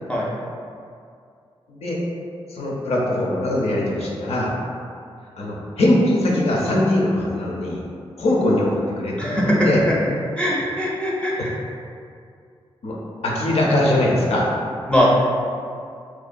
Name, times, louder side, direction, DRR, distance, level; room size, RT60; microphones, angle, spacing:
voice 1, 1.7-2.0 2.5-4.5 5.4-7.8 8.2-9.8 11.4-11.5 12.8-13.0 13.2-14.5, left 1 dB, 75° left, -3 dB, 0.5 m, -21 dB
voice 2, 9.2-10.0 10.4-11.3 14.9-15.1, equal, 10° left, -6 dB, 0.4 m, -20 dB
2.7 x 2.2 x 2.4 m, 2.3 s
wide cardioid pair, 80°, 11 cm